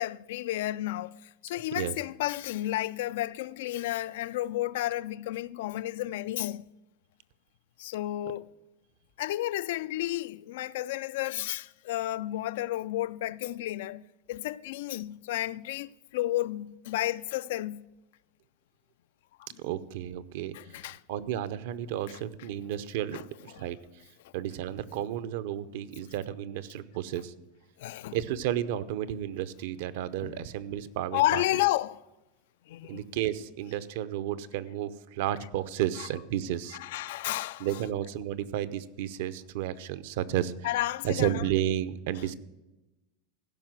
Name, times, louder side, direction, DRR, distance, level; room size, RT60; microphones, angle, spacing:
voice 1, 0.0-6.6 7.8-8.5 9.2-17.9 19.4-19.6 20.5-21.0 23.1-23.2 23.5-23.7 27.8-28.2 30.2-30.4 31.1-32.0 32.7-33.0 36.7-37.8 40.6-41.4, left 15 dB, 65° left, 0.3 m, -32 dB
voice 2, 19.6-20.6 21.1-23.2 23.4-23.8 24.3-27.3 28.1-31.4 32.9-36.8 37.6-40.5 41.0-42.3, right 11 dB, 60° right, 0.7 m, -32 dB
15.5 x 5.8 x 7.6 m
supercardioid pair, 155°, 0 cm